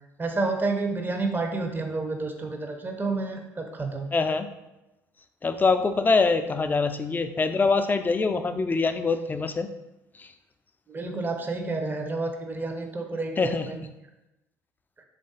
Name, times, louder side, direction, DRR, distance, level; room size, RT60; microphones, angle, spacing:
voice 1, 0.2-4.1 10.9-13.9, right 3 dB, 25° right, 4 dB, 0.7 m, -30 dB
voice 2, 4.1-4.5 5.4-9.7 10.2-10.3 13.4-13.7, left 4 dB, 25° left, 8 dB, 0.4 m, -24 dB
3.4 x 2.5 x 3.9 m, 0.96 s
hypercardioid pair, 55°, 8 cm